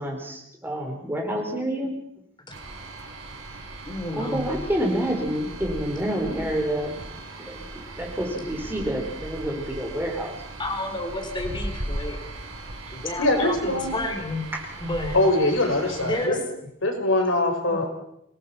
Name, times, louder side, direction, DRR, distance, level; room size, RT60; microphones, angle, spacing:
voice 1, 0.0-1.9 4.2-7.0 7.5-10.3, right 1 dB, 10° right, 1 dB, 4.4 m, -28 dB
sound 1, 2.5-16.3, right 1 dB, 85° right, 4.6 m, -38 dB
voice 2, 3.9-4.5 10.6-12.2 12.9-14.4 14.8-15.2 16.0-16.4 17.7-17.8, left 1 dB, 25° left, 3 dB, 3.6 m, -30 dB
voice 3, 13.2-14.0 15.1-16.4 16.8-17.9, left 2 dB, 80° left, 3 dB, 4.7 m, -22 dB
26.0 x 18.5 x 5.8 m, 0.75 s
head